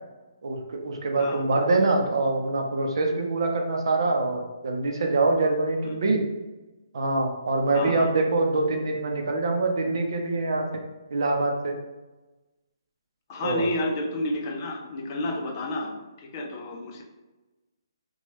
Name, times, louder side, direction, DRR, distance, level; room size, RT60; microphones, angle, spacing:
voice 1, 0.4-6.2 6.9-10.7 11.1-11.7 13.4-13.6, right 2 dB, 65° right, 2 dB, 0.5 m, -24 dB
voice 2, 7.7-8.1 13.3-17.0, left 1 dB, 35° left, 1 dB, 0.5 m, -31 dB
2.9 x 2.2 x 2.9 m, 1.1 s
hypercardioid pair, 150°, 3 cm